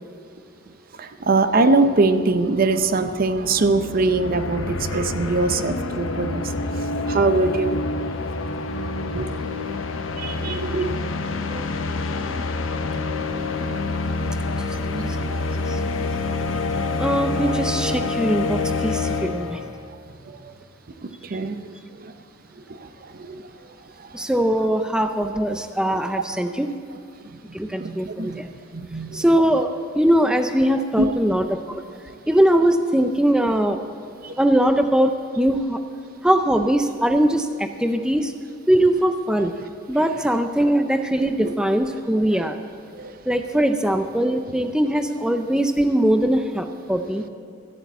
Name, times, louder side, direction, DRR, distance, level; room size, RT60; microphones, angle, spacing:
voice 1, 1.0-7.8 9.1-9.3 10.2-11.6 13.9-14.0 14.9-15.2 16.0-16.1 20.3-20.5 21.0-22.1 22.7-23.5 24.0-24.1 24.8-24.9 27.8-28.4 28.7-29.2 31.0-31.1 34.2-34.3 42.3-42.4 42.9-43.1 43.5-43.6, right 3 dB, 50° right, 10 dB, 0.6 m, -23 dB
sound 1, 2.4-19.8, left 3 dB, 90° left, 0.8 m, -27 dB
voice 2, 17.0-19.6 24.1-26.7 27.5-28.5 29.1-31.6 32.3-33.8 34.4-35.8 36.2-38.3 38.7-39.5 39.9-42.6 43.3-47.3, right 1 dB, 5° right, 7 dB, 0.5 m, -21 dB
14.0 x 8.4 x 8.1 m, 2.4 s
head